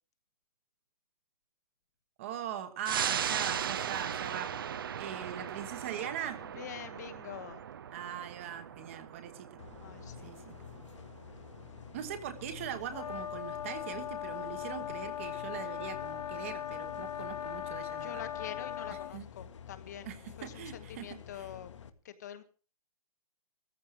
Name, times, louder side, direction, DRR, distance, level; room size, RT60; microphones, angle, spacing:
voice 1, 2.2-4.5 5.0-6.4 7.9-9.6 10.2-10.5 11.9-18.2 19.1-19.2 20.1-21.1 21.4-21.5, right 9 dB, 20° right, 9 dB, 1.3 m, -41 dB
sound 1, 2.8-13.8 14.2-14.3, right 8 dB, 40° right, 0.7 m, -39 dB
voice 2, 6.4-7.6 8.8-8.9 9.8-10.3 18.0-21.7 22.0-22.4, left 9 dB, 30° left, 10 dB, 1.2 m, -46 dB
sound 2, 9.6-21.9, left 8 dB, 55° left, 1.6 m, -50 dB
sound 3, 12.9-19.2, left 10 dB, 90° left, 1.3 m, -39 dB
15.0 x 14.5 x 4.8 m, 0.36 s
hypercardioid pair, 180°, 19 cm